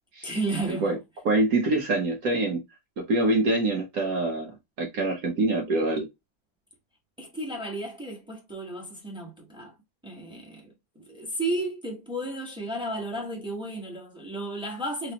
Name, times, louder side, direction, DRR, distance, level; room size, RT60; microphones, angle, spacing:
voice 1, 0.2-1.0 7.2-9.7 10.0-15.1, right 2 dB, 5° right, 0.4 m, -33 dB
voice 2, 1.2-2.6 3.1-6.1, right 2 dB, 60° right, 1.1 m, -25 dB
4.1 x 2.0 x 2.7 m
omnidirectional pair, 2.1 m